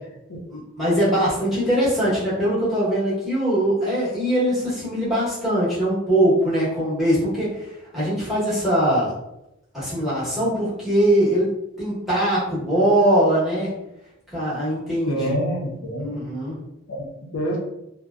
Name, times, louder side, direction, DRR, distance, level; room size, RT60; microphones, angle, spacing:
voice 1, 0.5-7.7 7.9-9.1 9.7-11.5 11.8-13.7 14.3-15.3 16.0-16.6, right 1 dB, ahead, -10 dB, 0.9 m, -21 dB
voice 2, 15.1-16.3 16.9-17.6, equal, 85° left, -2 dB, 0.6 m, -27 dB
2.6 x 2.1 x 2.3 m, 0.86 s
head